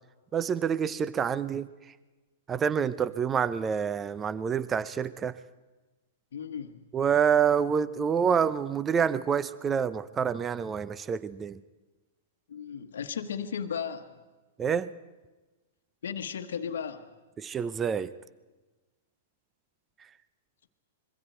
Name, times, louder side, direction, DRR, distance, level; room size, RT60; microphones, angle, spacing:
voice 1, 0.3-1.7 2.5-5.3 6.9-11.6 14.6-14.9 17.4-18.1, right 7 dB, 20° right, 17 dB, 0.7 m, -27 dB
voice 2, 6.3-6.8 12.5-14.1 16.0-17.1, left 7 dB, 70° left, 6 dB, 1.3 m, -35 dB
26.0 x 22.5 x 4.5 m, 1.2 s
hypercardioid pair, 110°, 0 cm